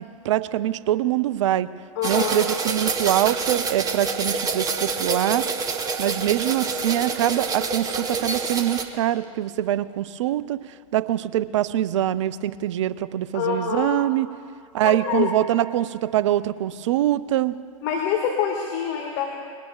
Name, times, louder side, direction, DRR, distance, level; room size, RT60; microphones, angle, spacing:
voice 1, 0.0-1.7 2.0-5.5 6.0-10.6 10.9-14.3 14.7-17.6, right 12 dB, 55° right, 15 dB, 0.5 m, -24 dB
voice 2, 2.0-2.5 13.3-14.1 14.8-15.3 17.8-19.3, left 8 dB, 45° left, 0 dB, 1.8 m, -26 dB
sound 1, 2.0-8.8, right 4 dB, 20° right, 1.2 m, -27 dB
22.0 x 18.0 x 2.4 m, 2.2 s
figure-of-eight pair, 100°, 18 cm